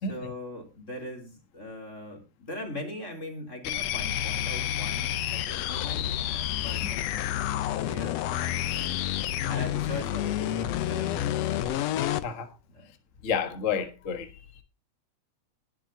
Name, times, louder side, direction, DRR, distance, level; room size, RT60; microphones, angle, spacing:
voice 1, 0.1-7.4 7.8-8.9 9.5-11.7 12.7-12.9, left 1 dB, 20° left, 3.5 m, -40 dB
sound 1, 3.6-12.3, left 12 dB, 85° left, 1.4 m, -29 dB
voice 2, 13.2-14.3, left 6 dB, 65° left, 0.7 m, -30 dB
21.0 x 7.6 x 2.8 m
omnidirectional pair, 3.8 m